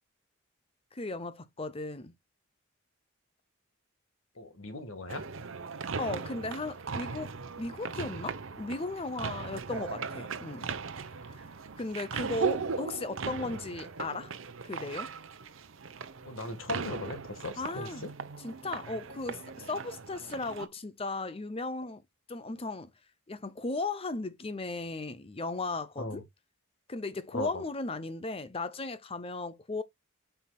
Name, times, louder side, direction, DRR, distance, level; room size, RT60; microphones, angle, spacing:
voice 1, 0.9-2.1 6.0-10.7 11.3-11.4 11.8-14.3 14.6-15.1 17.6-18.0 18.4-22.0 22.3-22.9 23.3-26.2 26.9-29.8, left 3 dB, 25° left, 0.7 m, -36 dB
voice 2, 4.4-5.2 9.7-9.9 12.1-12.3 16.2-18.1 26.0-26.2 27.3-27.6, left 2 dB, 80° left, 1.6 m, -38 dB
sound 1, 5.1-20.7, right 5 dB, 75° right, 0.8 m, -38 dB
7.4 x 5.7 x 2.3 m
head